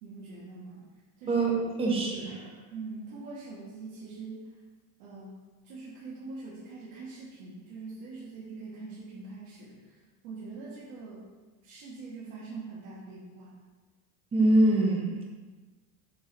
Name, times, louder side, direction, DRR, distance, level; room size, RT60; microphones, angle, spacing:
voice 1, 0.0-0.9 1.2-1.4 2.7-4.6 5.0-5.4 5.6-11.3 11.6-13.6, right 3 dB, 60° right, -8 dB, 1.6 m, -43 dB
voice 2, 1.3-2.5 14.3-15.2, right 2 dB, 15° right, -1 dB, 0.9 m, -24 dB
7.5 x 4.4 x 3.4 m, 1.3 s
cardioid pair, 165°, 39 cm